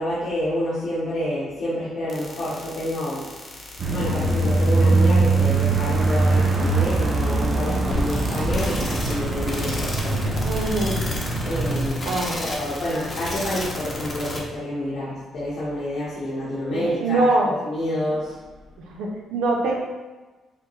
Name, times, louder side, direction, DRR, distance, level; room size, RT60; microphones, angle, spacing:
voice 1, 0.0-10.4 11.4-18.4, left 1 dB, 65° left, -9 dB, 1.1 m, -28 dB
sound 1, 2.1-14.4, left 2 dB, 35° left, 0.9 m, -32 dB
sound 2, 3.8-11.9, right 3 dB, 50° right, 0.6 m, -22 dB
voice 2, 10.4-11.0 12.0-12.4 16.7-17.5 18.9-19.8, right 2 dB, 85° right, 0 dB, 0.7 m, -23 dB
4.9 x 2.2 x 3.1 m, 1.2 s
cardioid pair, 90°, 0 cm